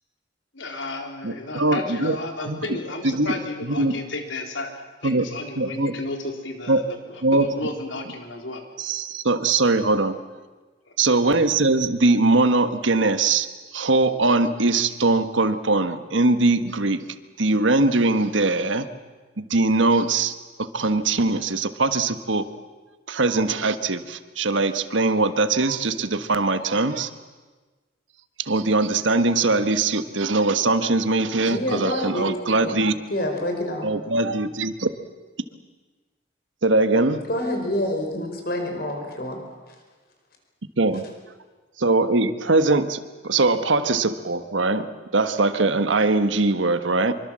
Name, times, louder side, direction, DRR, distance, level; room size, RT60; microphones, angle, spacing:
voice 1, 0.5-4.7 5.0-8.6 10.9-11.2, left 2 dB, 90° left, 3 dB, 3.8 m, -33 dB
voice 2, 1.2-2.2 2.5-2.6 3.0-3.3 3.6-4.0 5.0-5.3 5.6-5.9 6.7-6.8 7.2-7.5 8.8-10.2 11.0-13.5 13.7-17.0 17.4-18.9 19.4-22.5 23.1-27.1 28.4-32.9 33.8-34.9 36.6-37.2 40.8-41.1 41.8-44.9 45.1-47.1, right 3 dB, 90° right, 10 dB, 1.4 m, -21 dB
voice 3, 31.5-32.2 32.6-32.7 33.1-33.9 37.3-39.4 39.7-39.8, left 1 dB, 55° left, 3 dB, 5.0 m, -27 dB
25.5 x 24.0 x 7.6 m, 1.3 s
head